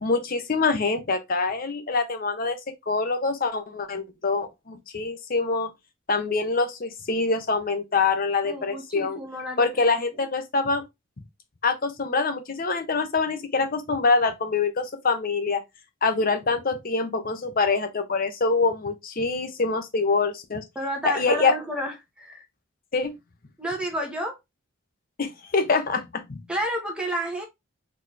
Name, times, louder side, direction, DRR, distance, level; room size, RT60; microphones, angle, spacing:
voice 1, 0.0-2.6 2.9-5.7 6.1-9.2 9.6-10.8 11.6-15.6 16.0-20.6 21.0-21.5 22.9-23.1 25.2-26.4, left 4 dB, 45° left, 0.7 m, -25 dB
voice 2, 8.4-9.7 10.1-10.2 20.7-22.4 23.6-24.4 26.5-27.4, equal, 5° right, 1.1 m, -30 dB
4.1 x 3.0 x 3.2 m
head